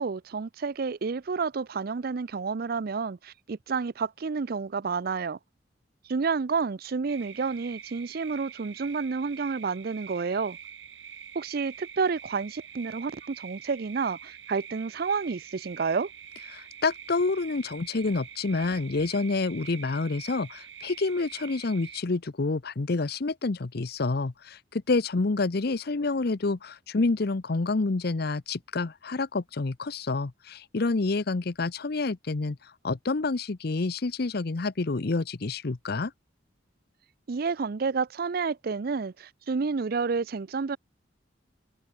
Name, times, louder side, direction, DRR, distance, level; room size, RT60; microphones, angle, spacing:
voice 1, 0.0-5.4 6.1-10.6 11.3-16.1 37.3-40.8, right 5 dB, 50° right, 0.5 m, -30 dB
sound 1, 7.1-22.0, right 8 dB, 75° right, 7.3 m, -45 dB
voice 2, 16.5-36.1, left 3 dB, 55° left, 0.7 m, -28 dB
head